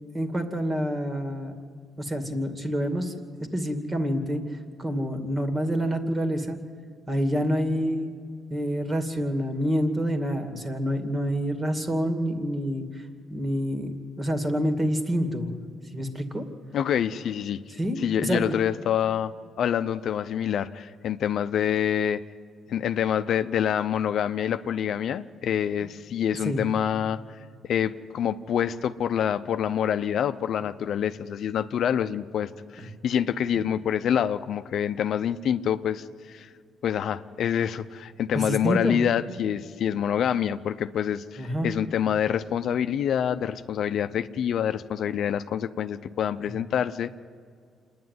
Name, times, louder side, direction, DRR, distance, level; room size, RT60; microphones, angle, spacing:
voice 1, 0.1-1.5 2.0-3.1 3.5-4.4 4.8-6.6 7.1-8.1 8.5-16.4 17.8-18.5 26.4-26.6 38.3-39.0 41.4-41.7, equal, 25° right, 7 dB, 2.4 m, -27 dB
voice 2, 16.7-17.6 18.0-19.3 19.6-22.2 22.7-27.4 27.6-36.5 36.8-47.2, left 9 dB, 70° left, 10 dB, 0.6 m, -26 dB
27.0 x 10.5 x 9.5 m, 2.2 s
cardioid pair, 90°, 0 cm